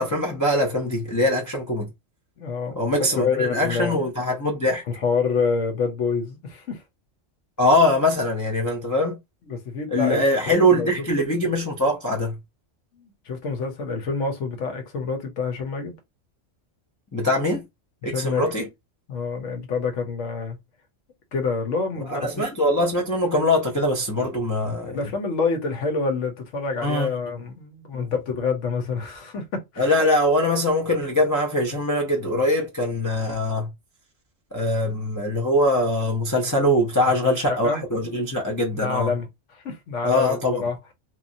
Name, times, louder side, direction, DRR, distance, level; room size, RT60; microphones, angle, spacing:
voice 1, 0.0-1.9 2.8-4.8 7.6-9.2 9.9-12.4 17.1-17.7 18.0-18.7 22.1-25.0 26.8-27.1 27.9-28.1 29.8-33.7 34.5-39.1 40.0-40.6, left 1 dB, 30° left, 0.4 m, -22 dB
voice 2, 2.4-4.0 4.9-6.8 9.5-10.2 10.7-10.9 11.2-11.3 13.0-15.9 18.0-18.5 19.1-20.6 21.3-22.4 24.9-29.9 37.2-37.8 38.7-39.3 39.5-40.8, left 4 dB, 75° left, 1.1 m, -27 dB
2.9 x 2.3 x 2.6 m
omnidirectional pair, 1.3 m